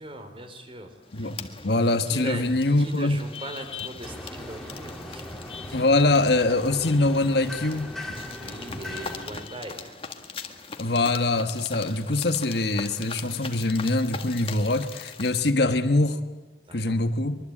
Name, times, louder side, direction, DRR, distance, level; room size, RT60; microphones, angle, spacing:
voice 1, 0.0-1.7 2.1-2.5 2.8-5.8 8.4-10.0 16.7-17.0, right 1 dB, 30° right, 7 dB, 3.5 m, -40 dB
sound 1, 1.1-15.5, left 5 dB, 30° left, 1.7 m, -41 dB
voice 2, 1.6-3.2 5.7-7.9 10.8-16.2 16.7-17.4, left 2 dB, 65° left, 9 dB, 1.5 m, -23 dB
sound 2, 4.0-9.3, left 1 dB, ahead, 2.8 m, -39 dB
24.5 x 23.0 x 8.7 m, 1.2 s
head